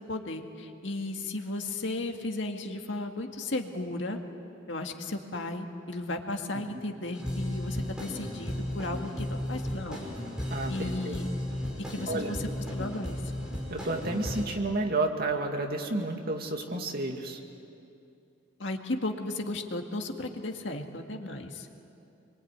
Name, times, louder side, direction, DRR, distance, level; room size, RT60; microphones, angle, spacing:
voice 1, 0.0-4.2 4.7-10.0 10.7-11.3 11.9-12.4 12.7-13.2 18.6-21.7, left 2 dB, 65° left, 4 dB, 2.0 m, -35 dB
sound 1, 7.1-14.4, left 1 dB, 5° right, 5.6 m, -35 dB
voice 2, 10.5-11.2 12.1-12.4 13.7-17.4, right 2 dB, 50° right, 3 dB, 2.3 m, -31 dB
26.5 x 23.0 x 9.6 m, 2.7 s
head